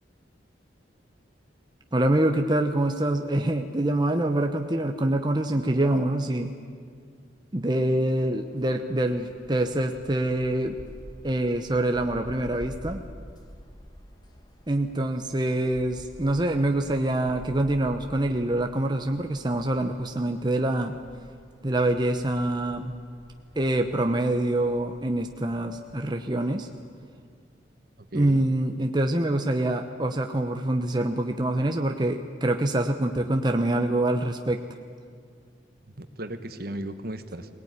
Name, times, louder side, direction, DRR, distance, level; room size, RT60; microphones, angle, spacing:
voice 1, 1.9-6.5 7.5-10.8 11.2-13.0 14.7-21.0 21.6-23.0 23.5-26.7 28.1-34.6, right 1 dB, 25° right, 5 dB, 0.9 m, -25 dB
sound 1, 7.8-26.9, equal, 25° left, 2.0 m, -48 dB
voice 2, 28.1-28.5 35.9-37.5, right 1 dB, 55° right, 9 dB, 1.4 m, -36 dB
22.5 x 19.0 x 9.6 m, 2.1 s
head